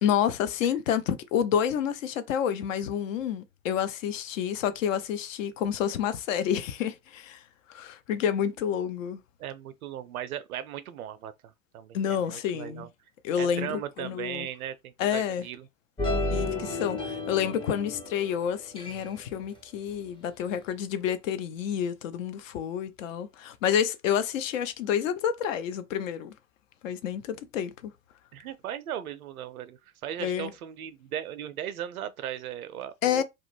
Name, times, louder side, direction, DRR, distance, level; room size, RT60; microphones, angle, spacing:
voice 1, 0.0-7.4 7.7-9.2 11.9-12.9 13.2-14.5 15.0-15.4 16.3-26.3 26.8-27.9 30.2-30.5 33.0-33.2, left 9 dB, 60° left, 0.5 m, -29 dB
voice 2, 9.4-12.9 13.4-15.7 28.3-33.2, right 10 dB, 75° right, 0.5 m, -37 dB
sound 1, 16.0-18.3 18.8-19.1, left 2 dB, 10° left, 0.5 m, -31 dB
2.3 x 2.1 x 3.0 m
figure-of-eight pair, 80°, 44 cm